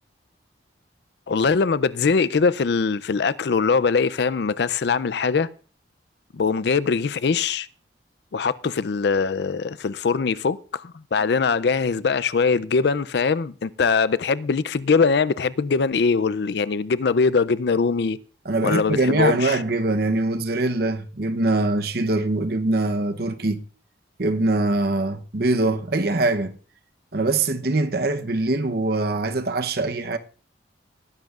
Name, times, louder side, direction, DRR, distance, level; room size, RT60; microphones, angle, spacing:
voice 1, 1.3-5.5 6.3-7.7 8.3-18.2 18.6-19.6, left 5 dB, 60° left, 0.4 m, -22 dB
voice 2, 18.4-23.6 24.2-26.5 27.1-30.2, right 2 dB, 55° right, 0.8 m, -23 dB
19.5 x 10.5 x 2.4 m
head